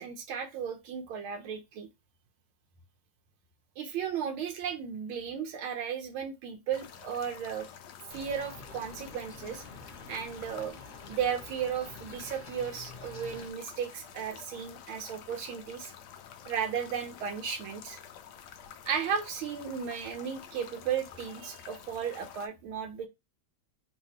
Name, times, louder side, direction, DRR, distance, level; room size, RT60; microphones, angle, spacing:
voice 1, 0.0-1.9 3.8-7.7 8.1-9.6 10.1-10.8 11.1-15.9 16.5-18.0 18.9-23.1, right 7 dB, 80° right, 1.6 m, -35 dB
sound 1, 6.7-22.5, left 8 dB, 75° left, 1.0 m, -49 dB
sound 2, 8.1-13.5, left 3 dB, 30° left, 1.0 m, -48 dB
3.9 x 2.6 x 2.9 m
omnidirectional pair, 2.3 m